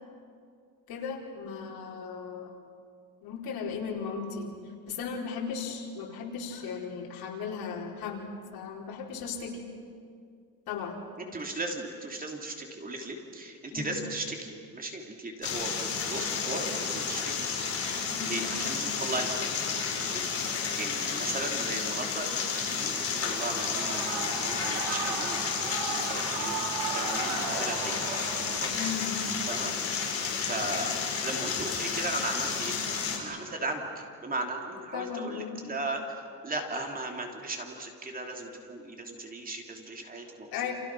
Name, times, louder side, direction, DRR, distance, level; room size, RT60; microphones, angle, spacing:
voice 1, 0.9-2.5 3.2-4.5 4.9-9.6 10.7-11.0 13.7-14.0 18.1-18.5 28.7-29.3 34.9-35.6 40.5-40.7, left 6 dB, 70° left, 0 dB, 4.7 m, -36 dB
voice 2, 11.2-17.4 17.8-19.5 20.0-20.2 20.8-26.6 26.9-27.9 28.6-28.9 29.5-29.7 30.5-30.9 31.2-32.7 33.2-36.1 36.4-40.7, right 2 dB, 25° right, 2 dB, 3.2 m, -37 dB
sound 1, 15.4-33.2, left 5 dB, 40° left, 5.2 m, -31 dB
Shout / Cheering, 23.2-28.6, right 6 dB, 85° right, 2.7 m, -35 dB
29.5 x 28.0 x 6.2 m, 2.2 s
cardioid pair, 150°, 37 cm